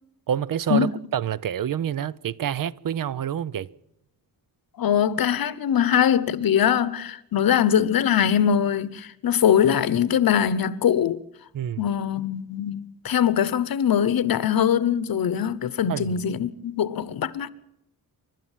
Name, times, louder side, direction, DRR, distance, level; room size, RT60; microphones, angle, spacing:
voice 1, 0.3-3.7 11.5-11.8 15.9-16.2, right 9 dB, 60° right, 0.7 m, -27 dB
voice 2, 4.8-11.2 11.8-17.5, left 9 dB, 70° left, 1.0 m, -22 dB
28.5 x 12.5 x 7.4 m
wide cardioid pair, 135°, 36 cm